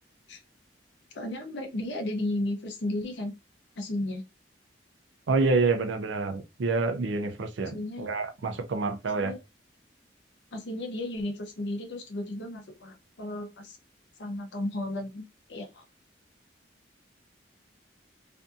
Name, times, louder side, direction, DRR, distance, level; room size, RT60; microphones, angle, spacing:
voice 1, 1.1-3.3 3.8-4.2 7.7-8.1 9.1-9.4 10.5-13.8 14.2-15.8, left 1 dB, 70° left, 0.6 m, -34 dB
voice 2, 5.3-9.3, right 3 dB, 85° right, 0.5 m, -27 dB
2.6 x 2.6 x 2.3 m
head